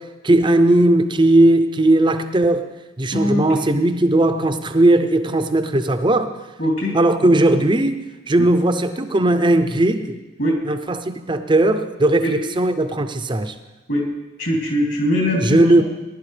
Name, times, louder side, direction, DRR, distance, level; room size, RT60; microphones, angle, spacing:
voice 1, 0.0-2.7 3.0-6.3 6.9-10.2 10.6-13.5 15.4-15.8, right 1 dB, 25° right, 0.6 m, -17 dB
voice 2, 3.1-3.4 6.6-7.0 8.4-8.5 10.4-10.6 12.2-12.3 13.9-14.1 14.4-15.8, equal, 60° left, 3.1 m, -21 dB
19.0 x 11.5 x 3.3 m
head